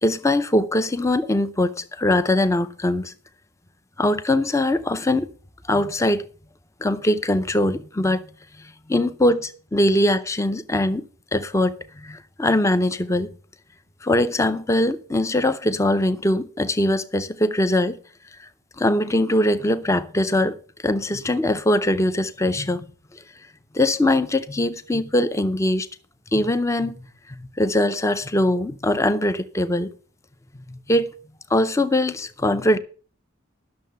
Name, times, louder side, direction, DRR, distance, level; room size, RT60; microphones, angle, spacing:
voice 1, 0.0-3.1 4.0-5.3 5.7-6.3 6.8-8.2 8.9-11.0 11.3-13.3 14.0-18.0 18.8-20.6 20.8-22.8 23.7-25.9 26.3-27.0 27.4-29.9 30.7-31.1 31.5-32.8, left 1 dB, 15° left, 0.5 m, -21 dB
11.5 x 6.5 x 6.7 m
head